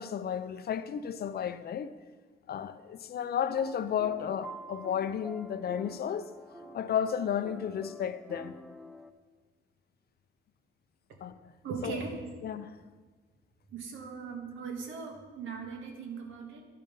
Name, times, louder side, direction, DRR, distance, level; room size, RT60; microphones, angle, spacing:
voice 1, 0.0-1.9 2.5-6.3 6.7-8.6 11.2-11.3 11.8-12.0 12.4-12.7, left 9 dB, 50° left, 0.5 m, -33 dB
sound 1, 3.5-9.1, right 1 dB, 5° right, 0.5 m, -47 dB
voice 2, 11.6-12.2 13.7-16.7, right 5 dB, 80° right, 1.6 m, -39 dB
11.0 x 5.4 x 5.3 m
cardioid pair, 90°, 20 cm